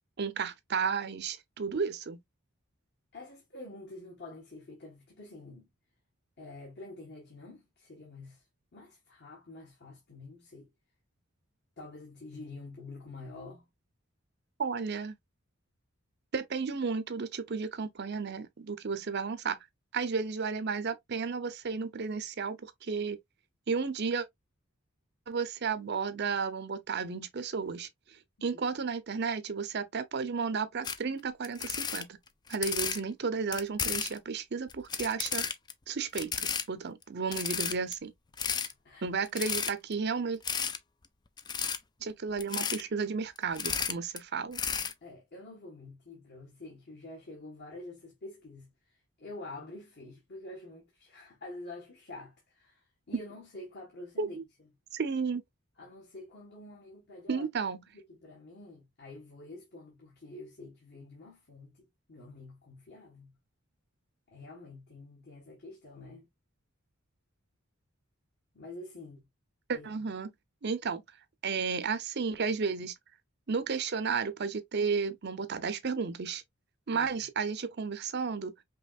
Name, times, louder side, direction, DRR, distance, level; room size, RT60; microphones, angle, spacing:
voice 1, 0.2-2.2 14.6-15.1 16.3-19.6 19.9-23.2 23.7-24.3 25.3-27.9 28.4-32.2 32.5-35.4 35.9-38.1 39.0-40.4 42.0-44.6 54.2-54.4 54.9-55.4 57.3-57.8 69.7-70.3 70.6-71.0 71.4-72.9 73.5-76.4 76.9-78.5, right 5 dB, 50° right, 0.6 m, -33 dB
voice 2, 3.1-5.7 6.4-8.4 8.7-10.7 11.8-13.7 28.4-28.6 38.8-39.0 45.0-54.4 55.8-57.5 57.9-63.3 64.3-66.3 68.5-69.3 69.7-69.9 76.9-77.1, left 2 dB, 50° left, 1.4 m, -47 dB
sound 1, 30.8-31.0 31.4-33.0 33.5-34.2 34.7-35.7 36.1-36.6 37.0-37.1 37.3-37.9 38.3-38.7 39.3-39.9 40.4-40.8 41.4-41.8 42.4-42.8 43.4-44.2 44.5-44.9, left 6 dB, 20° left, 0.3 m, -32 dB
5.3 x 3.0 x 2.4 m
head